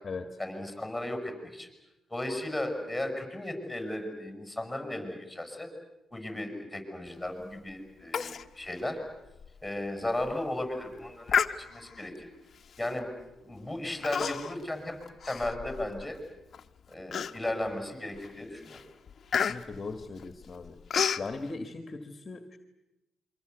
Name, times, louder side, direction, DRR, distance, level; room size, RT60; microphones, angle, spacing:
voice 1, 0.4-1.7 2.1-5.7 6.1-9.0 9.6-12.3 12.8-13.1 13.4-15.0 15.2-16.2 16.9-18.8, left 1 dB, 5° left, 6 dB, 6.9 m, -35 dB
Human voice, 8.1-8.5 8.8-8.9 9.4-9.5 10.1-10.3 11.3-12.0 12.8-13.0 14.0-14.6 15.0-16.0 16.5-16.6 17.1-17.7 18.2-18.4 18.7-21.3, left 7 dB, 50° left, 1.1 m, -31 dB
voice 2, 19.3-20.8 21.2-22.6, left 3 dB, 35° left, 8 dB, 1.9 m, -39 dB
28.0 x 24.0 x 8.2 m, 0.98 s
cardioid pair, 90°, 0 cm